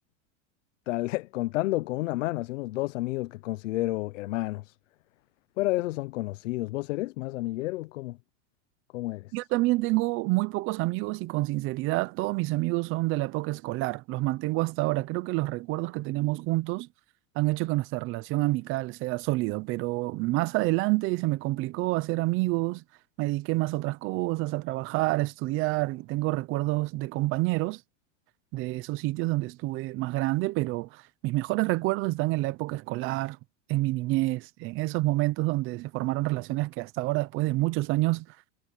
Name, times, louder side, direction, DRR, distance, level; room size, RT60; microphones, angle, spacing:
voice 1, 0.9-4.8 5.6-8.2 8.9-9.3, left 18 dB, 90° left, 0.7 m, -30 dB
voice 2, 9.3-16.9 17.4-22.8 23.2-27.8 28.5-33.4 33.7-38.3, right 20 dB, 35° right, 0.6 m, -28 dB
supercardioid pair, 155°, 37 cm